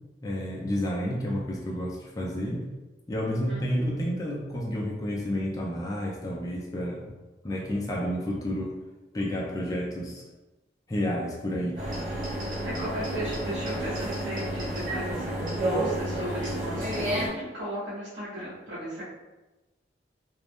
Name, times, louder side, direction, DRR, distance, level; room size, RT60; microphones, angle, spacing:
voice 1, 0.2-2.6 3.1-7.1 7.4-8.7 9.1-10.2 10.9-11.9, equal, 20° left, -3 dB, 0.4 m, -30 dB
voice 2, 3.5-3.9 12.6-19.1, right 1 dB, 80° right, -11 dB, 1.0 m, -36 dB
sound 1, 11.8-17.3, right 1 dB, 45° right, 0.8 m, -30 dB
2.4 x 2.0 x 3.3 m, 1.1 s
head